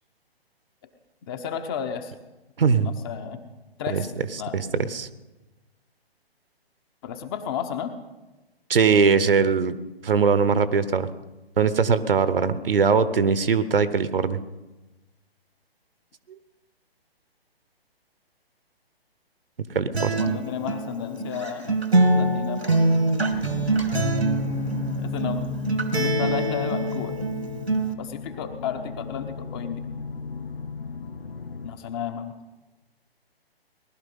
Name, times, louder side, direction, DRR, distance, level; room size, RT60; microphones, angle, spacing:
voice 1, 1.3-2.1 2.8-3.4 3.8-4.1 4.4-4.6 7.0-7.9 20.0-21.8 22.2-22.8 25.0-25.5 25.9-27.2 28.0-29.9 31.6-32.3, left 8 dB, 25° left, 8 dB, 1.0 m, -32 dB
voice 2, 2.6-3.0 3.9-4.0 4.5-5.1 8.7-9.8 10.0-11.1 11.6-14.4 19.7-20.1, right 5 dB, 65° right, 14 dB, 1.1 m, -21 dB
Acoustic guitar, 19.9-27.9, right 2 dB, 85° right, 1.9 m, -24 dB
sound 1, 23.3-31.7, left 6 dB, 65° left, 1.2 m, -36 dB
19.5 x 12.0 x 5.5 m, 1.1 s
figure-of-eight pair, 130°, 31 cm